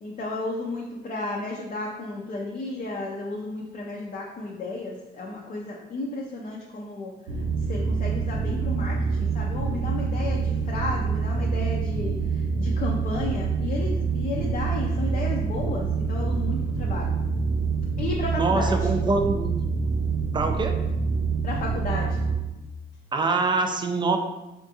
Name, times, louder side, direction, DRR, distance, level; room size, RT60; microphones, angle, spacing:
voice 1, 0.0-7.1 7.7-17.1 18.0-18.9 21.4-22.2, left 2 dB, 40° left, -2 dB, 0.5 m, -33 dB
sound 1, 7.3-22.3, right 5 dB, 90° right, 0.5 m, -26 dB
voice 2, 18.4-19.5 20.3-20.8 23.1-24.2, right 3 dB, 25° right, 5 dB, 0.4 m, -24 dB
3.5 x 2.4 x 2.7 m, 1.0 s
cardioid pair, 90°, 20 cm